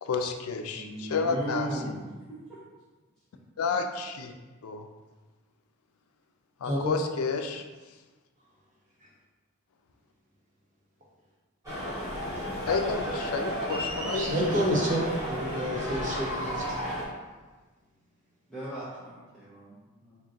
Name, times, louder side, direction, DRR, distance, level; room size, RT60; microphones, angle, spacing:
voice 1, 0.0-2.0 3.6-4.3 4.6-4.9 6.6-7.6 12.7-14.6, left 4 dB, 85° left, 5 dB, 0.4 m, -31 dB
voice 2, 0.8-2.2 2.5-2.6 18.5-20.2, right 1 dB, 5° left, -11 dB, 0.6 m, -37 dB
sound 1, 11.6-17.0, equal, 15° right, 1.0 m, -33 dB
voice 3, 14.1-16.8, equal, 35° right, -4 dB, 0.7 m, -29 dB
3.9 x 2.2 x 3.7 m, 1.3 s
head